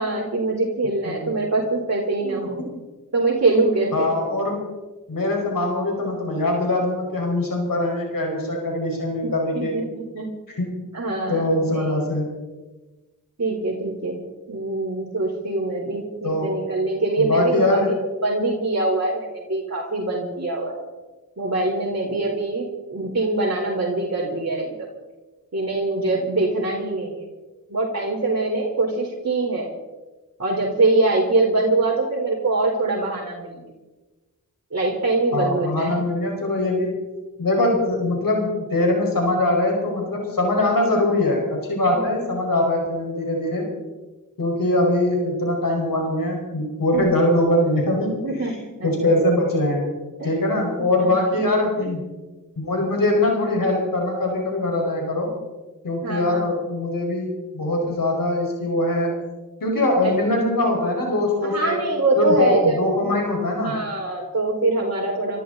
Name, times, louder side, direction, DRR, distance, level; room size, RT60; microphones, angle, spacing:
voice 1, 0.0-2.6 3.1-4.1 9.2-10.3 10.9-11.8 13.4-14.2 14.5-17.9 18.2-20.8 21.4-24.9 25.5-27.2 27.7-29.7 30.4-33.6 34.7-35.9 41.9-42.0 48.2-48.9 50.2-50.3 51.0-51.2 56.0-56.5 60.0-60.2 61.5-62.8 63.0-63.1 63.6-65.4, right 2 dB, 50° right, -4 dB, 4.0 m, -23 dB
voice 2, 2.2-2.8 3.9-4.6 5.1-9.7 10.5-10.8 11.3-12.3 16.2-16.5 17.2-17.9 35.3-36.9 37.4-43.6 44.4-48.5 48.8-49.8 50.2-52.0 52.6-55.3 55.8-59.1 59.6-61.8 62.2-63.7, left 1 dB, 65° left, 0 dB, 5.1 m, -22 dB
26.0 x 13.5 x 4.0 m, 1.2 s
cardioid pair, 40°, 35 cm